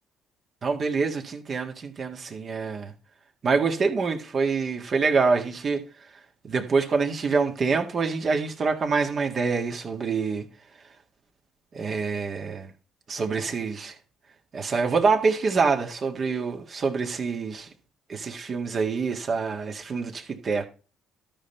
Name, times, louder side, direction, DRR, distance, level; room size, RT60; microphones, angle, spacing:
voice 1, 0.6-2.9 3.4-5.8 6.4-10.5 11.7-12.7 13.1-13.9 14.5-17.7 18.1-20.6, right 4 dB, 50° right, 1.8 m, -26 dB
13.0 x 5.6 x 4.4 m
hypercardioid pair, 60°, 0 cm